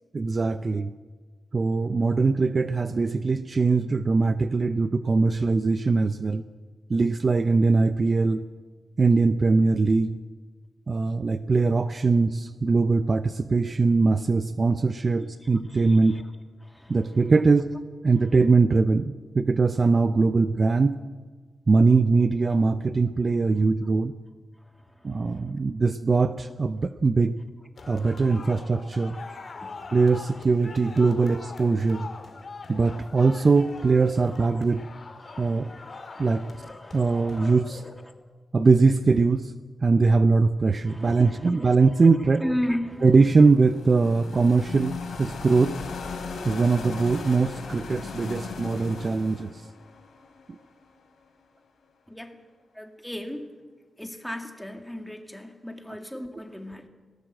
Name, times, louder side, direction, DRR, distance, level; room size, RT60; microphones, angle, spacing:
voice 1, 0.1-0.9 1.5-6.4 6.9-8.5 9.0-10.2 10.9-16.2 16.9-17.7 18.0-21.0 21.7-24.1 25.0-27.4 27.9-29.2 29.9-32.1 32.7-34.9 35.4-35.7 36.2-36.5 36.9-37.8 38.5-39.5 39.8-42.4 43.0-45.8 46.4-49.6, right 4 dB, 35° right, 11 dB, 0.6 m, -21 dB
voice 2, 15.2-16.2 16.6-17.2 24.7-25.5 27.8-28.6 29.1-30.0 30.3-30.6 34.2-34.7 35.2-37.6 37.8-38.0 40.9-43.1 52.1-52.4 52.7-53.5 54.0-56.9, equal, 5° left, 5 dB, 2.1 m, -37 dB
sound 1, 27.8-38.2, left 4 dB, 50° left, 1.9 m, -43 dB
sound 2, 43.0-51.0, left 5 dB, 85° left, 3.6 m, -38 dB
18.5 x 18.0 x 7.7 m, 1.4 s
wide cardioid pair, 115°, 0 cm